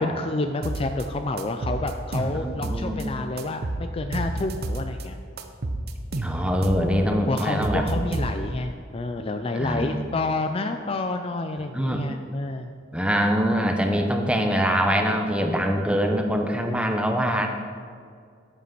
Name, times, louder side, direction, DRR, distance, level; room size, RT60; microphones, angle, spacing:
voice 1, 0.0-5.2 7.0-12.7, left 2 dB, 30° left, 6 dB, 0.4 m, -29 dB
sound 1, 0.6-1.0 1.4-3.0 3.4-5.0 5.4-6.9 7.1-8.6, right 2 dB, 55° right, 0.7 m, -30 dB
voice 2, 2.2-3.2 6.2-7.8 9.5-10.0 11.7-12.1 12.9-17.5, equal, 5° right, 4 dB, 0.8 m, -24 dB
8.3 x 7.5 x 5.9 m, 2.2 s
head